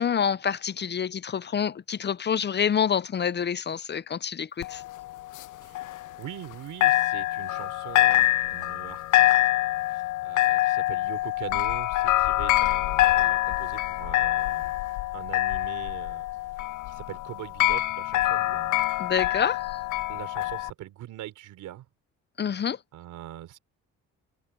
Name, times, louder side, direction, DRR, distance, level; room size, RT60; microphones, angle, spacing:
voice 1, 0.0-4.8 19.0-19.8 22.4-22.8, left 7 dB, 35° left, 0.6 m, -27 dB
sound 1, 4.6-6.5 6.8-20.7, left 16 dB, 80° left, 0.6 m, -25 dB
voice 2, 5.6-9.3 9.9-14.7 15.1-16.3 16.9-18.8 20.1-21.9 22.9-23.6, right 13 dB, 85° right, 3.8 m, -42 dB
cardioid pair, 90°, 30 cm